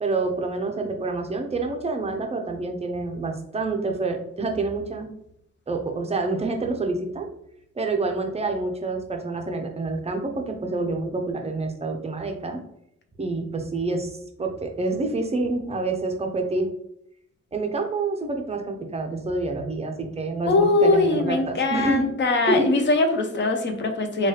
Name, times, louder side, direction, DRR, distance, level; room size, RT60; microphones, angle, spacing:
voice 1, 0.0-5.1 5.7-7.3 7.8-12.6 13.2-14.1 14.4-16.7 17.5-22.1 22.4-22.7, right 3 dB, 20° right, 3 dB, 0.5 m, -27 dB
voice 2, 20.5-24.3, left 2 dB, 40° left, 5 dB, 0.5 m, -21 dB
3.1 x 2.3 x 3.1 m, 0.74 s
wide cardioid pair, 130°, 29 cm